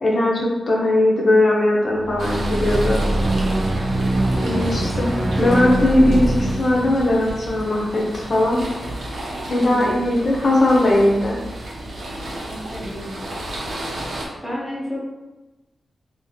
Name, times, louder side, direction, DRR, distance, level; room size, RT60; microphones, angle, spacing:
voice 1, 0.0-3.0 4.4-8.6 9.5-11.4, left 1 dB, 40° left, -2 dB, 0.8 m, -19 dB
sound 1, 1.9-8.3, right 1 dB, 35° right, 0.4 m, -23 dB
sound 2, 2.2-14.2, right 1 dB, 70° right, 0.8 m, -33 dB
voice 2, 4.5-4.8 9.6-10.0 12.5-13.1 14.4-15.1, equal, 10° left, -7 dB, 1.0 m, -31 dB
3.3 x 2.9 x 3.1 m, 1.1 s
wide cardioid pair, 150°, 0 cm